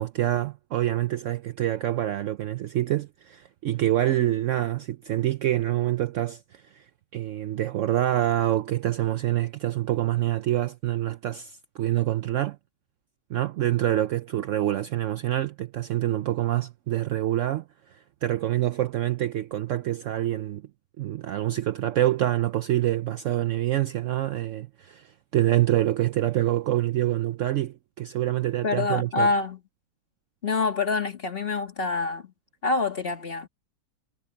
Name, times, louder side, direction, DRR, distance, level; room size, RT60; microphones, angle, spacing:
voice 1, 0.0-6.8 7.1-12.6 13.3-17.6 18.2-20.6 21.0-29.3, right 13 dB, 70° right, 0.8 m, -26 dB
voice 2, 28.6-29.6 30.4-32.3 32.6-33.5, left 3 dB, 35° left, 2.2 m, -26 dB
omnidirectional pair, 1.6 m